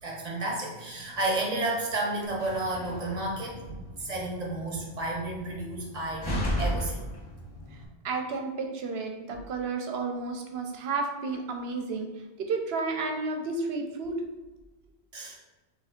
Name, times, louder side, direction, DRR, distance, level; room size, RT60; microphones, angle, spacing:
voice 1, 0.0-3.6 4.0-7.0 15.1-15.4, right 2 dB, 40° right, -2 dB, 0.9 m, -31 dB
Slam, 2.2-7.9, equal, 30° left, 0.5 m, -35 dB
voice 2, 8.0-12.1 12.4-14.2, right 3 dB, 70° right, 4 dB, 0.9 m, -32 dB
3.4 x 3.0 x 3.6 m, 1.2 s
omnidirectional pair, 1.1 m